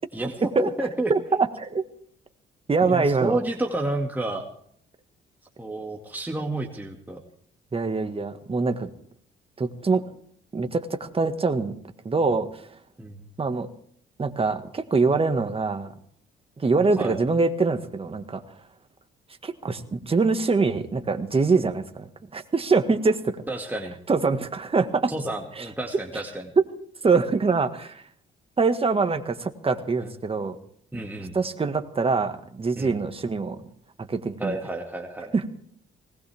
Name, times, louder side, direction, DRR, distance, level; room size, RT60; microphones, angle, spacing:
voice 1, 0.1-1.1 2.8-4.5 5.6-7.2 13.0-13.2 17.0-17.2 23.5-24.0 25.1-26.5 30.0-30.1 30.9-31.3 32.8-33.0 34.4-35.3, right 2 dB, 10° right, 1 dB, 2.1 m, -30 dB
voice 2, 1.1-1.8 2.7-3.4 7.7-8.9 9.6-10.0 10.5-11.7 12.1-12.6 13.4-13.7 14.2-15.9 16.6-18.4 19.4-23.4 24.1-25.1 25.6-25.7 26.1-26.2 26.6-26.7 27.0-28.0 28.6-30.6 31.3-33.7 34.0-34.6 35.3-35.5, right 4 dB, 30° right, 8 dB, 1.8 m, -24 dB
19.5 x 18.5 x 3.6 m, 0.63 s
cardioid pair, 90°, 20 cm